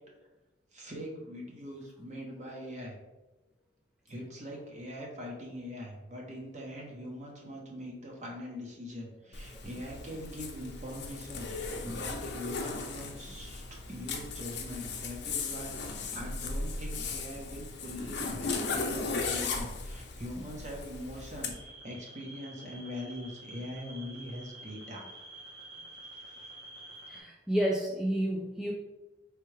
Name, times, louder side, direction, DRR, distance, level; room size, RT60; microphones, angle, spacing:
voice 1, 0.7-3.0 4.1-13.6 13.9-25.1 26.2-26.3, equal, 40° right, -1 dB, 0.9 m, -42 dB
Zipper (clothing), 9.3-21.5, left 4 dB, 60° left, 0.6 m, -37 dB
sound 1, 21.5-27.2, right 1 dB, 65° right, 0.9 m, -49 dB
voice 2, 27.1-28.7, equal, 5° right, -4 dB, 0.4 m, -30 dB
4.5 x 3.3 x 3.2 m, 1.0 s
head